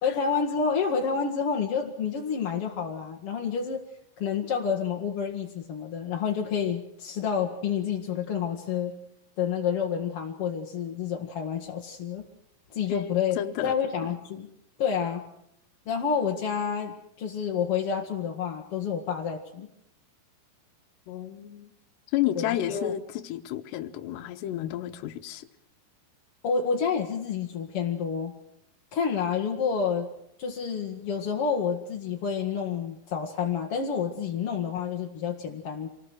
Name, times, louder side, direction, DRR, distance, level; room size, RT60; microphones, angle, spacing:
voice 1, 0.0-3.8 4.2-8.9 9.4-12.3 12.7-14.5 14.8-15.2 15.9-19.7 22.4-22.9 26.4-28.3 28.9-30.1 30.4-35.9, left 6 dB, 50° left, 1 dB, 2.0 m, -29 dB
voice 2, 12.9-13.8 21.1-21.7 22.1-25.5, left 13 dB, 80° left, 8 dB, 3.2 m, -31 dB
27.5 x 20.5 x 6.4 m, 0.77 s
omnidirectional pair, 4.9 m